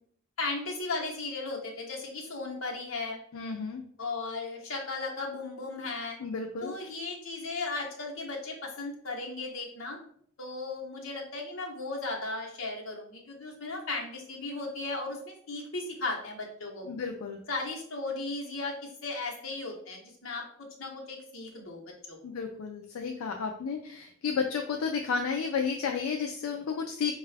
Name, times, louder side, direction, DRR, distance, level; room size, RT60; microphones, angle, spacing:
voice 1, 0.4-3.2 4.0-6.2 6.6-10.0 10.4-16.9 17.5-20.4 20.8-21.8 22.1-22.2, left 3 dB, 65° left, -1 dB, 0.9 m, -36 dB
voice 2, 3.3-3.8 6.2-6.7 16.9-17.4 22.2-27.1, left 5 dB, 85° left, 3 dB, 0.4 m, -32 dB
4.6 x 2.3 x 3.3 m, 0.64 s
head